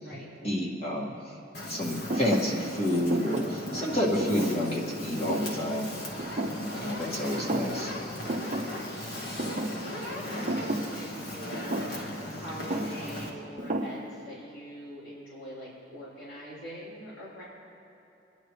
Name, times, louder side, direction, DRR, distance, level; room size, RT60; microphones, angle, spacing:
voice 1, 0.1-1.2 1.7-5.9 6.7-7.9, left 1 dB, 35° left, -3 dB, 2.1 m, -29 dB
Fire, 1.5-13.3, left 1 dB, 60° left, 1.8 m, -38 dB
Thump thud, 2.1-7.1 7.4-8.0 8.3-14.4, right 1 dB, 40° right, 0.7 m, -35 dB
voice 2, 9.6-17.4, equal, 85° left, -9 dB, 4.0 m, -43 dB
27.5 x 10.5 x 3.3 m, 2.9 s
head